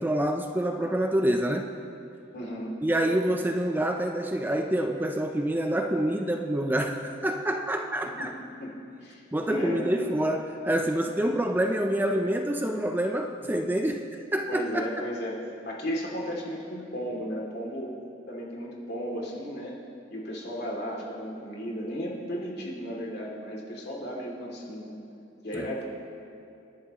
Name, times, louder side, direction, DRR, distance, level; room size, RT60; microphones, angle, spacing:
voice 1, 0.0-1.7 2.8-8.4 9.3-14.9 25.5-25.7, right 1 dB, 10° right, 4 dB, 0.5 m, -27 dB
voice 2, 2.3-2.8 8.6-8.7 9.0-9.9 14.5-17.9 18.3-19.8 20.1-25.0 25.4-25.8, equal, 60° left, -3 dB, 2.8 m, -34 dB
27.0 x 11.0 x 3.1 m, 2.6 s
head